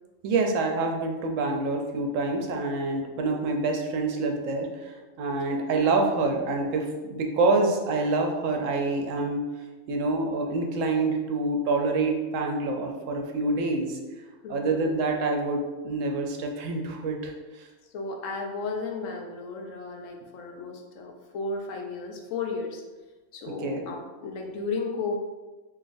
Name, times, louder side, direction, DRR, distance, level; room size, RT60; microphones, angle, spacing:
voice 1, 0.2-9.4 9.9-14.0 14.5-17.6 23.6-23.9, right 3 dB, 80° right, 2 dB, 1.0 m, -27 dB
voice 2, 14.4-14.9 17.9-22.8 23.3-25.2, left 3 dB, 80° left, 2 dB, 1.0 m, -34 dB
3.9 x 2.9 x 2.5 m, 1.2 s
omnidirectional pair, 1.3 m